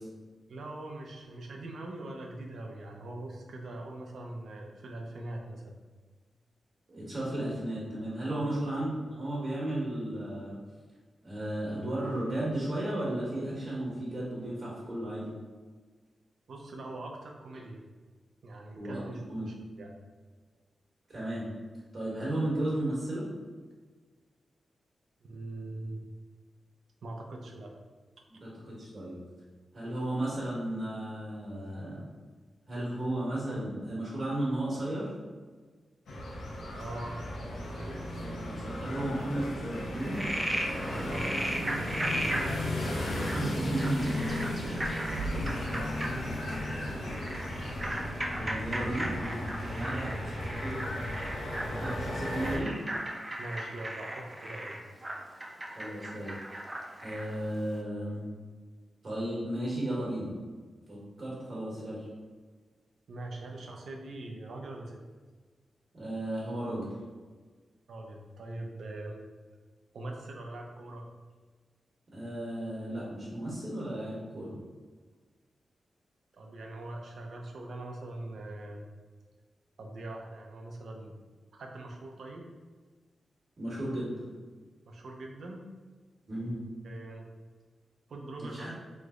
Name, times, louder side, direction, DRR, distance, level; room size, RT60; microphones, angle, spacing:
voice 1, 0.5-5.7 8.3-8.5 16.5-17.8 18.4-19.9 25.2-26.0 27.0-27.7 36.7-37.2 37.6-38.0 40.9-41.3 41.7-43.5 44.3-46.2 48.7-49.0 49.7-50.0 53.4-54.8 63.1-65.0 67.9-69.2 69.9-71.1 76.3-78.9 79.8-81.1 81.5-82.5 84.9-85.6 86.8-87.3 88.1-88.8, right 2 dB, 75° right, 1 dB, 0.5 m, -42 dB
voice 2, 6.9-10.6 11.2-15.3 18.8-19.5 21.1-21.5 21.9-23.3 28.3-29.2 29.7-32.0 32.7-35.1 38.0-40.2 43.3-44.0 46.8-47.1 48.4-49.4 49.7-50.2 50.6-50.8 51.7-52.8 55.6-56.3 57.0-58.2 59.0-60.3 60.9-62.1 65.9-66.9 72.1-74.6 83.6-84.3 86.3-86.6 88.4-88.7, right 1 dB, 50° right, -6 dB, 1.2 m, -34 dB
sound 1, 36.1-52.6, left 1 dB, 85° left, 0.6 m, -35 dB
sound 2, 37.1-43.1, equal, 20° left, 0.7 m, -49 dB
Frog, 39.9-57.4, right 1 dB, 20° right, 0.5 m, -37 dB
3.1 x 2.0 x 3.6 m, 1.4 s
cardioid pair, 80°, 0 cm